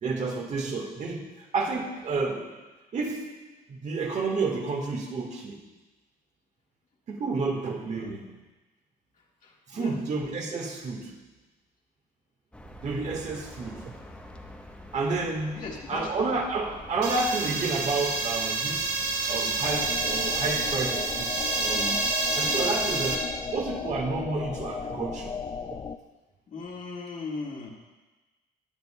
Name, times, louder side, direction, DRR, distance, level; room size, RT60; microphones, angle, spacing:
voice 1, 0.0-1.3 1.5-2.5 2.9-3.4 3.7-5.6 7.1-8.2 9.7-11.2 12.8-14.0 14.9-15.6 15.9-18.9 19.3-21.3 21.6-22.0 22.3-23.2 23.5-25.3, right 3 dB, 45° right, 2 dB, 1.5 m, -30 dB
voice 2, 9.4-10.0 15.5-16.1 26.5-27.7, left 4 dB, 50° left, -2 dB, 1.9 m, -38 dB
sound 1, 12.5-19.9, equal, 5° left, 0.9 m, -46 dB
sound 2, 17.0-23.2, right 3 dB, 85° right, 1.7 m, -28 dB
sound 3, 19.6-26.0, left 6 dB, 25° left, 0.4 m, -36 dB
20.0 x 7.0 x 2.2 m, 1.2 s
cardioid pair, 110°, 17 cm